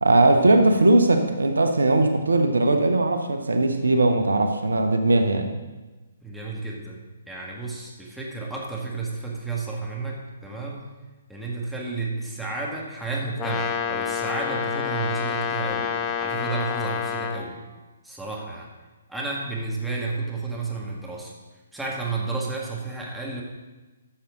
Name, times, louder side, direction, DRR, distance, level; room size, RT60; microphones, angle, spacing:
voice 1, 0.0-5.5, right 2 dB, 75° right, 6 dB, 1.0 m, -19 dB
voice 2, 6.2-7.0 7.3-10.9 11.3-15.9 16.2-17.6 18.0-18.7 19.1-21.3 21.7-23.4, right 3 dB, ahead, -4 dB, 1.8 m, -31 dB
Brass instrument, 13.4-17.4, left 7 dB, 20° left, 0.9 m, -28 dB
12.5 x 7.0 x 3.9 m, 1.2 s
figure-of-eight pair, 130°, 0 cm